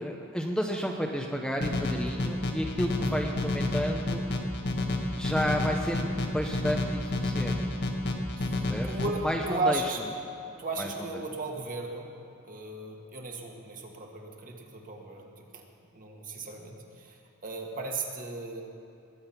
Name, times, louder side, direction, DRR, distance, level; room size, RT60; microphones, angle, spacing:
voice 1, 0.0-4.2 5.2-7.6 8.7-8.9 9.2-9.8 10.8-11.1, equal, 5° left, 1 dB, 0.8 m, -31 dB
sound 1, 1.6-9.1, left 2 dB, 50° left, 1.4 m, -30 dB
voice 2, 8.4-10.0 10.6-12.1 12.5-15.6 15.9-18.6, right 2 dB, 40° right, 1 dB, 1.8 m, -35 dB
20.5 x 8.7 x 5.8 m, 2.7 s
head